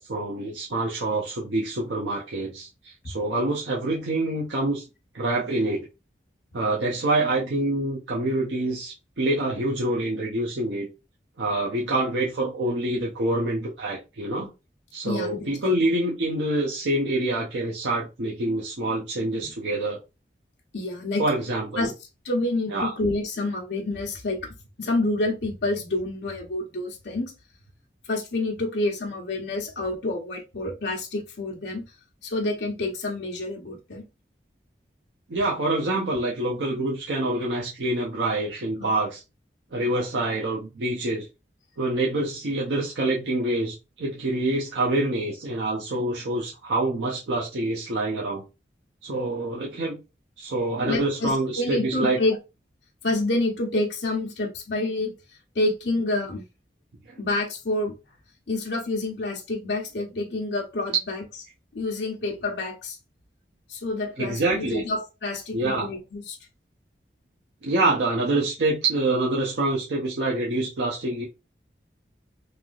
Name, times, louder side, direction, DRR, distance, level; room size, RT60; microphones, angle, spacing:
voice 1, 0.0-4.8 5.1-5.9 6.5-10.9 11.4-14.5 14.9-20.0 21.2-21.9 22.7-22.9 35.3-39.2 39.7-41.3 41.8-48.4 49.0-50.0 50.4-52.2 64.2-64.8 65.5-65.9 67.6-71.2, right 2 dB, 85° right, 0.6 m, -26 dB
voice 2, 15.0-15.6 19.4-19.5 20.7-21.2 21.8-21.9 22.2-24.4 24.8-27.3 28.1-31.8 32.2-34.0 38.8-38.9 50.8-52.4 53.0-55.1 55.6-56.4 57.2-57.9 58.5-61.2 61.7-63.0 63.7-66.4, left 2 dB, 80° left, 0.8 m, -28 dB
3.3 x 2.6 x 2.3 m
head